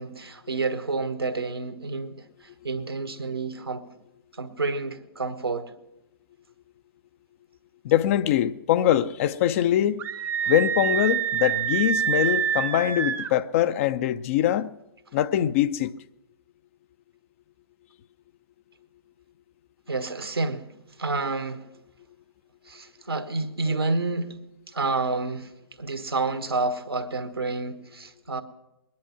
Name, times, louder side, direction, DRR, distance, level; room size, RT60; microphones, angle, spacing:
voice 1, 0.0-2.1 2.6-3.9 4.4-5.7 19.9-20.7 21.0-21.6 22.7-24.4 24.7-25.5 25.8-28.4, right 3 dB, 80° right, 1.5 m, -29 dB
voice 2, 7.8-10.0 10.5-14.7 15.1-15.9, left 11 dB, 35° left, 0.5 m, -23 dB
Screaming, 10.0-13.3, right 8 dB, 15° right, 0.6 m, -26 dB
21.5 x 10.5 x 5.9 m
figure-of-eight pair, 120°, 13 cm